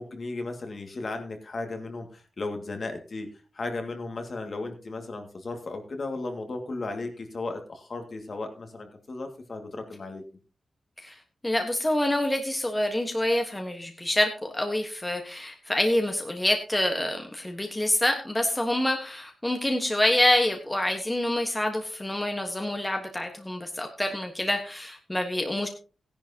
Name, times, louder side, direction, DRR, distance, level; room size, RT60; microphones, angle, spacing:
voice 1, 0.0-3.3 3.5-10.2, left 2 dB, 45° left, 5 dB, 2.1 m, -35 dB
voice 2, 11.4-25.7, left 1 dB, 10° left, 4 dB, 1.3 m, -26 dB
16.5 x 10.5 x 2.9 m, 0.35 s
wide cardioid pair, 120°, 0 cm